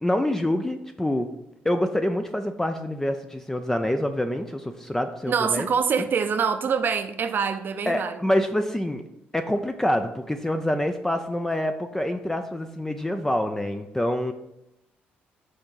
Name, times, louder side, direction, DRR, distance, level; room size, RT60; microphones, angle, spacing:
voice 1, 0.0-1.3 1.6-5.7 6.0-6.1 7.9-9.0 9.3-14.3, left 1 dB, 10° left, 0.5 m, -26 dB
voice 2, 5.3-8.2, right 6 dB, 50° right, 0.6 m, -25 dB
6.3 x 3.5 x 5.7 m
supercardioid pair, 70°, 4 cm